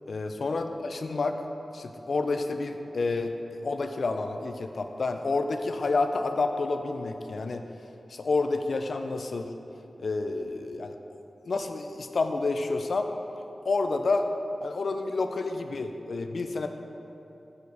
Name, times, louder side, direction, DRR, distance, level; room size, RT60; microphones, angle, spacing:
voice 1, 0.1-1.4 1.7-3.3 3.6-7.7 8.1-9.5 10.0-11.0 11.4-13.1 13.6-14.3 14.6-16.7, left 3 dB, 60° left, 6 dB, 0.4 m, -29 dB
6.4 x 4.8 x 5.3 m, 3.0 s
wide cardioid pair, 120°, 0 cm